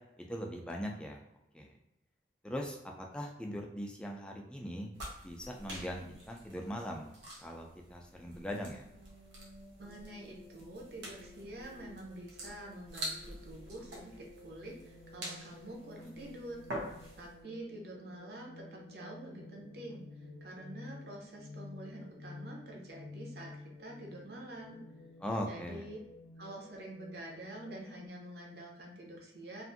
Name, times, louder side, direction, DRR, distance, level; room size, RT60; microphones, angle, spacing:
voice 1, 0.2-1.2 1.5-1.7 2.4-4.9 5.2-7.1 7.4-8.9 25.2-25.9, equal, 5° left, 0 dB, 0.3 m, -40 dB
sound 1, 4.9-17.4, right 1 dB, 90° right, 0.8 m, -47 dB
sound 2, 8.9-28.1, left 2 dB, 65° left, 0.5 m, -53 dB
voice 2, 9.8-16.6 17.2-20.0 20.4-24.8 25.5-26.0 26.4-29.6, right 1 dB, 60° right, -1 dB, 0.7 m, -47 dB
2.5 x 2.5 x 2.6 m, 0.86 s
head